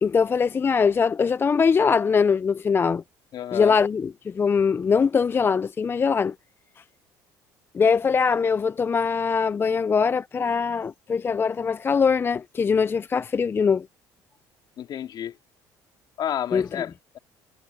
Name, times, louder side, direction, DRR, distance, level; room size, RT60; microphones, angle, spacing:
voice 1, 0.0-3.0 3.5-6.3 7.7-13.9 16.5-16.7, left 5 dB, 25° left, 0.4 m, -22 dB
voice 2, 3.3-3.8 14.8-15.4 16.2-17.2, left 10 dB, 55° left, 2.7 m, -31 dB
cardioid pair, 100°, 9 cm